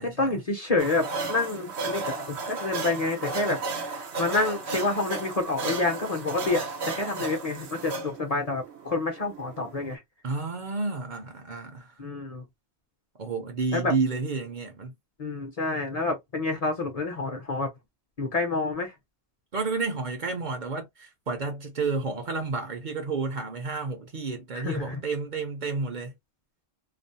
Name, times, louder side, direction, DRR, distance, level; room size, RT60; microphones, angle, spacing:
voice 1, 0.0-10.0 12.0-12.4 13.7-13.9 15.2-17.7 18.2-18.9 24.5-25.0, left 3 dB, 40° left, 0.7 m, -28 dB
sound 1, 0.8-10.0, right 3 dB, 85° right, 1.0 m, -34 dB
voice 2, 10.2-11.9 13.2-14.9 19.5-26.1, right 4 dB, 50° right, 0.7 m, -31 dB
2.5 x 2.0 x 2.7 m
omnidirectional pair, 1.1 m